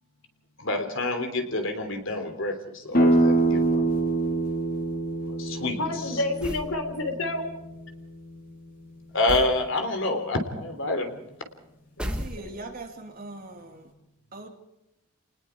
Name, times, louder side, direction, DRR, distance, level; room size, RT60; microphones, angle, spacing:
voice 1, 0.6-2.6 2.8-3.8 5.4-5.8 9.1-11.2, left 2 dB, 55° left, 6 dB, 3.3 m, -27 dB
sound 1, 2.9-8.5, right 2 dB, 40° left, 4.1 m, -26 dB
voice 2, 5.8-7.5 12.0-12.6, left 2 dB, 70° left, 6 dB, 3.6 m, -30 dB
sound 2, 6.4-6.8 9.3-9.6 12.0-12.8, equal, 5° right, 1.4 m, -33 dB
voice 3, 12.1-13.9 14.3-14.5, right 2 dB, 40° right, 2 dB, 3.0 m, -41 dB
29.5 x 20.0 x 4.7 m, 0.88 s
head